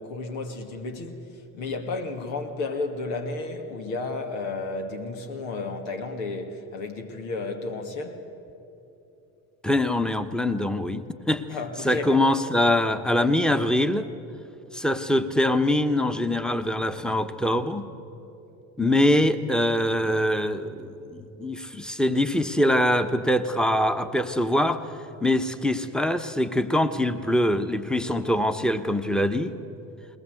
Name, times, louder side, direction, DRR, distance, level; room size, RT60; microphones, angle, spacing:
voice 1, 0.0-8.2 11.5-12.1, left 3 dB, 75° left, 2.4 m, -32 dB
voice 2, 9.6-11.4 11.8-14.1 14.7-17.9 18.8-24.8 25.2-29.5, left 1 dB, ahead, 1.2 m, -23 dB
21.0 x 19.5 x 7.9 m
hypercardioid pair, 70°, 45 cm